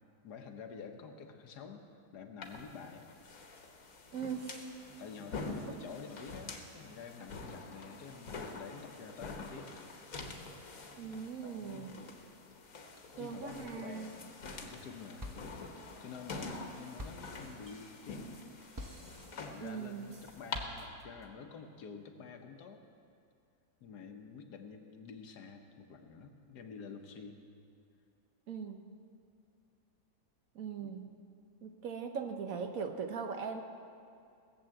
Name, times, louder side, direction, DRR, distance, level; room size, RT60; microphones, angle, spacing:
voice 1, 0.2-1.9 2.1-3.1 5.0-9.7 11.4-12.1 13.2-15.6 16.0-18.4 19.4-22.8 23.8-27.5 30.8-30.9, left 5 dB, 80° left, 5 dB, 1.6 m, -49 dB
sound 1, 2.4-20.6, left 3 dB, 60° left, 1.6 m, -46 dB
voice 2, 4.1-4.6 11.0-12.0 13.2-14.1 19.6-20.1 28.5-29.0 30.5-31.1 31.6-33.6, right 6 dB, 60° right, 5 dB, 1.2 m, -40 dB
sound 2, 14.3-14.9 15.2-21.2, equal, 25° right, 0.4 m, -50 dB
17.5 x 7.5 x 7.6 m, 2.5 s
omnidirectional pair, 1.7 m